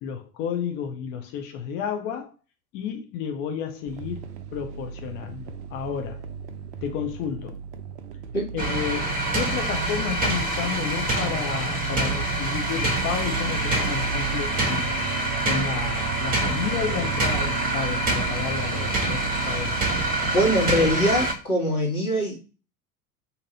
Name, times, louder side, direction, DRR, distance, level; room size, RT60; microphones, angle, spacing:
voice 1, 0.0-2.3 2.7-4.2 4.5-6.2 6.8-7.6 8.5-14.9 15.5-19.8, left 7 dB, 25° left, 0.4 m, -32 dB
sound 1, 3.9-20.7, right 6 dB, 55° right, 0.5 m, -36 dB
sound 2, 8.6-21.3, right 2 dB, 20° right, 0.9 m, -26 dB
voice 2, 20.2-22.4, equal, 75° left, 1.5 m, -23 dB
2.7 x 2.6 x 3.9 m
figure-of-eight pair, 80°, 45 cm